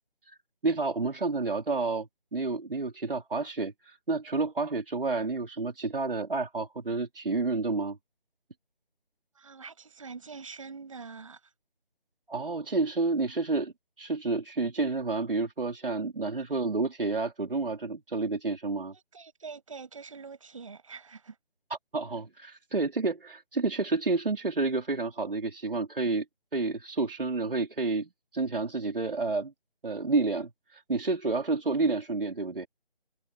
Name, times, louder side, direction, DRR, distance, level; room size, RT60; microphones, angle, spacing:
voice 1, 0.6-8.0 12.3-13.7 14.0-18.9 21.9-26.2 26.5-29.5 29.8-32.7, right 3 dB, 65° right, 4.2 m, -30 dB
voice 2, 9.3-11.5 16.4-16.6 18.9-21.4, right 5 dB, 35° right, 6.8 m, -45 dB
figure-of-eight pair, 170°, 29 cm